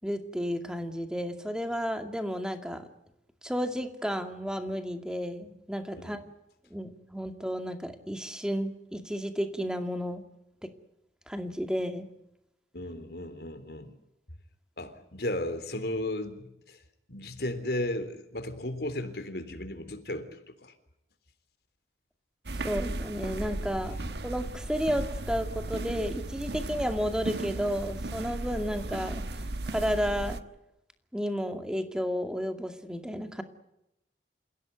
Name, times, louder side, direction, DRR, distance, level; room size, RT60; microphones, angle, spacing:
voice 1, 0.0-2.9 3.4-6.3 6.7-10.2 10.6-10.7 11.3-12.1 22.6-24.0 24.2-29.2 29.7-30.4 31.1-33.4, equal, 5° right, 2.3 m, -32 dB
voice 2, 12.7-13.9 14.8-16.8 17.1-20.3 20.6-20.7, left 1 dB, 65° left, 3.5 m, -35 dB
sound 1, 22.5-30.4, right 2 dB, 75° right, 1.3 m, -36 dB
28.5 x 16.5 x 9.4 m
head